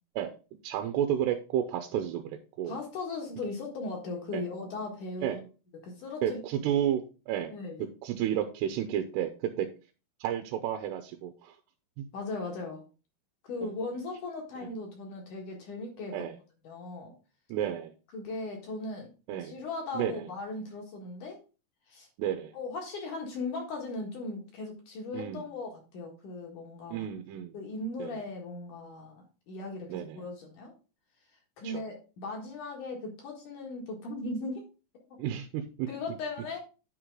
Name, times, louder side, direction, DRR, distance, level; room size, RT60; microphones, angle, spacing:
voice 1, 0.6-2.8 4.3-4.4 5.2-5.4 6.2-7.5 8.0-9.3 9.6-9.7 10.2-11.5 12.0-12.1 13.6-13.7 16.1-16.3 17.5-17.9 19.3-19.5 19.9-20.3 22.2-22.5 25.1-25.4 26.9-27.6 28.0-28.1 29.9-30.2 31.6-31.8 35.2-35.9, right 10 dB, 85° right, 6 dB, 2.8 m, -31 dB
voice 2, 2.6-5.5 5.8-6.4 7.5-7.9 12.1-12.8 13.4-16.2 16.6-17.1 18.1-19.1 19.4-21.4 21.9-22.1 22.5-27.1 27.5-30.7 31.6-34.7 35.1-35.2 35.9-36.6, left 2 dB, 55° left, 0 dB, 2.8 m, -38 dB
9.5 x 4.8 x 3.7 m, 0.33 s
omnidirectional pair, 4.8 m